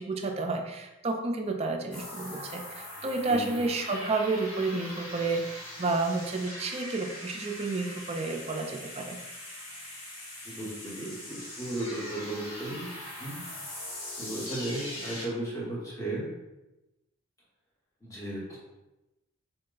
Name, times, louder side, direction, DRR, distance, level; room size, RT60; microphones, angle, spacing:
voice 1, 0.0-9.2, right 3 dB, 30° right, 4 dB, 0.4 m, -31 dB
sound 1, 1.9-15.3, left 1 dB, 65° left, 1.0 m, -41 dB
voice 2, 3.3-3.6 10.4-12.9 13.2-13.4 14.2-16.3 18.0-18.6, right 1 dB, 15° left, -6 dB, 0.9 m, -35 dB
4.1 x 2.1 x 3.7 m, 0.99 s
head